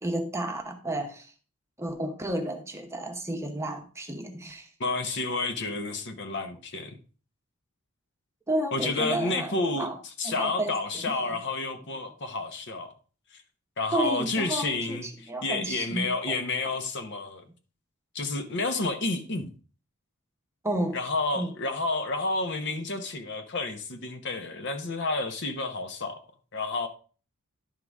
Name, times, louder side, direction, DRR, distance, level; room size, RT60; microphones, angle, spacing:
voice 1, 0.0-1.3 1.8-4.7 8.5-10.0 10.2-10.7 13.9-16.4 20.6-21.0 21.3-21.5, right 1 dB, 15° right, 0.9 m, -31 dB
voice 2, 4.8-7.0 8.7-9.9 10.2-12.9 13.3-13.4 13.8-17.4 18.1-19.5 20.9-26.2 26.5-26.9, left 3 dB, 55° left, 1.0 m, -30 dB
11.0 x 3.8 x 4.7 m
head